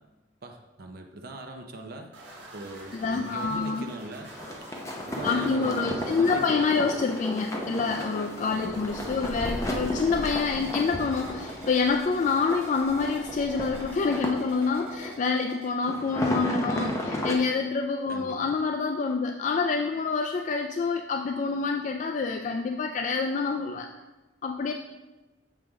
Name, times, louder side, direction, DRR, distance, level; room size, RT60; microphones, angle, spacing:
voice 1, 0.4-2.1 2.5-4.3 5.0-6.9 8.5-8.8 9.1-9.4 10.5-10.7 18.1-18.5, right 2 dB, 55° right, 3 dB, 0.6 m, -41 dB
sound 1, 2.1-15.7, equal, 75° right, 1.5 m, -45 dB
voice 2, 2.9-3.9 5.2-23.9 24.4-24.7, left 4 dB, 40° left, 4 dB, 0.3 m, -27 dB
sound 2, 4.3-15.1 15.8-17.3, left 1 dB, 15° left, 0.7 m, -34 dB
7.4 x 5.0 x 3.5 m, 1.1 s
head